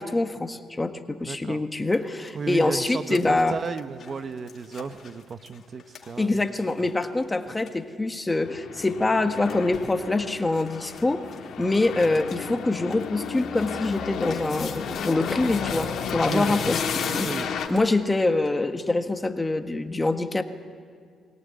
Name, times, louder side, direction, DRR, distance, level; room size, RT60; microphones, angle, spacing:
voice 1, 0.0-3.6 6.2-11.2 11.6-16.8 17.1-20.4, left 2 dB, 15° left, 7 dB, 1.5 m, -25 dB
voice 2, 1.3-1.6 2.3-6.4 6.8-6.9 16.3-16.6 17.2-17.5, right 5 dB, 45° right, 10 dB, 0.9 m, -34 dB
sound 1, 2.0-2.3 2.7-6.9 7.2-7.3 7.5-7.8 9.0-9.9 10.5-11.0 11.3-11.4 11.7-12.4 12.7-17.9 18.5-18.6, left 6 dB, 55° left, 2.8 m, -40 dB
Aircraft, 8.5-17.7, left 6 dB, 70° left, 2.4 m, -33 dB
23.5 x 18.0 x 9.4 m, 2.2 s
cardioid pair, 90°, 0 cm